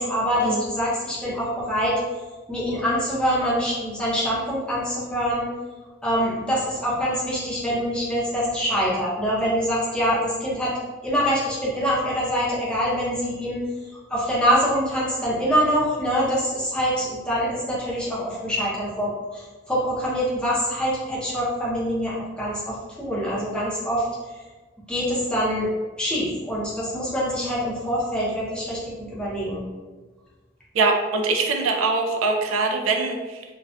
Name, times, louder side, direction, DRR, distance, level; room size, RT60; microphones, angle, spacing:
voice 1, 0.0-2.0 2.5-5.5 6.0-10.7 11.0-13.6 14.1-24.1 24.9-25.7 26.0-29.6, equal, 5° left, -8 dB, 0.6 m, -25 dB
voice 2, 30.7-33.4, right 3 dB, 90° right, 2 dB, 0.3 m, -23 dB
2.4 x 2.3 x 2.2 m, 1.3 s
head